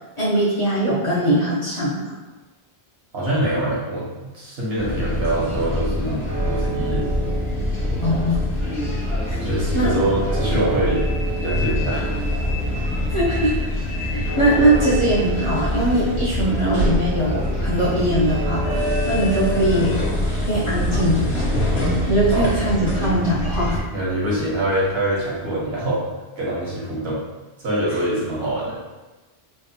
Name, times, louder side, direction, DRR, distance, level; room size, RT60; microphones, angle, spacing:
voice 1, 0.2-2.1 8.0-8.4 9.3-9.4 9.7-9.9 13.1-13.7 14.0-20.0 20.4-21.2 22.1-23.8, right 1 dB, 35° left, -9 dB, 0.7 m, -21 dB
voice 2, 3.1-7.1 9.4-11.0 11.4-12.1 22.3-22.5 23.9-26.0 26.4-27.2 27.6-28.8, right 1 dB, 75° right, -6 dB, 1.3 m, -24 dB
sound 1, 4.8-23.8, left 1 dB, 75° left, 1.1 m, -25 dB
sound 2, 6.3-24.5, right 3 dB, 45° right, 0.8 m, -32 dB
sound 3, 10.9-19.4, left 1 dB, 15° left, 0.3 m, -36 dB
3.3 x 2.4 x 2.7 m, 1.2 s
omnidirectional pair, 1.1 m